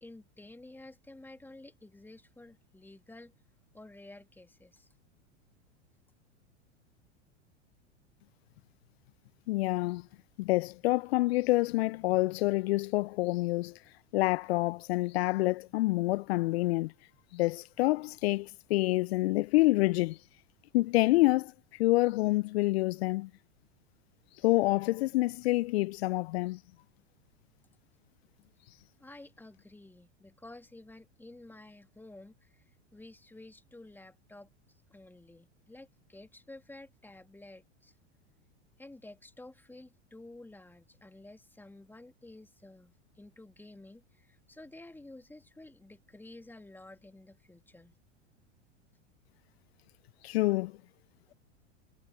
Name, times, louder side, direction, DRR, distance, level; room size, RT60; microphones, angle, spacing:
voice 1, 0.0-3.3 3.7-4.9 29.0-32.6 32.9-37.9 38.8-47.9, left 2 dB, 5° left, 2.5 m, -52 dB
voice 2, 9.5-10.1 10.4-13.8 14.1-16.9 17.3-20.2 20.7-23.3 24.4-26.6 50.2-50.7, left 20 dB, 60° left, 0.7 m, -27 dB
hypercardioid pair, 95°, 35 cm